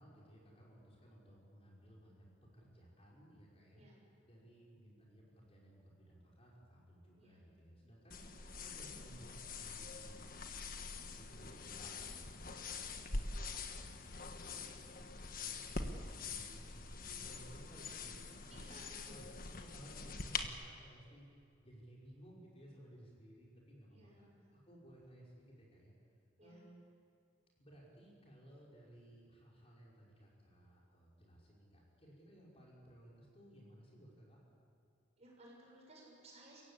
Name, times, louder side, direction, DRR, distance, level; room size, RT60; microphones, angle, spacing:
voice 1, 0.0-2.3 2.5-3.9 4.2-18.5 19.0-21.3 21.6-24.3 24.5-25.9 26.4-26.8 27.6-34.4, equal, 30° left, -4 dB, 5.5 m, -59 dB
sound 1, 8.1-20.4, left 4 dB, 50° left, 1.5 m, -45 dB
voice 2, 8.2-8.5 18.5-19.4 23.9-24.5 26.4-26.6 35.2-36.6, right 1 dB, 35° right, -2 dB, 7.2 m, -60 dB
29.5 x 16.5 x 8.5 m, 2.5 s
head